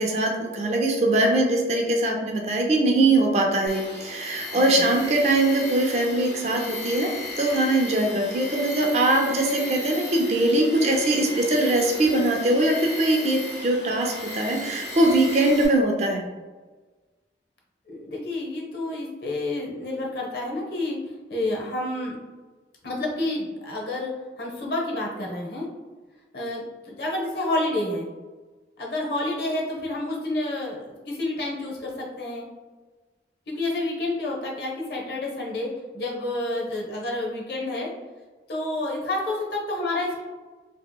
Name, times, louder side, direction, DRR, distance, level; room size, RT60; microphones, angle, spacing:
voice 1, 0.0-7.1 7.4-16.2, right 1 dB, 35° right, 1 dB, 0.4 m, -22 dB
Tools, 3.7-15.7, left 1 dB, 85° left, 1.1 m, -35 dB
voice 2, 4.5-5.0 17.9-21.0 21.3-22.2 22.8-25.7 26.3-28.1 28.8-32.4 33.5-37.9 38.5-40.2, left 2 dB, 65° left, -2 dB, 0.7 m, -29 dB
2.8 x 2.8 x 2.2 m, 1.3 s
head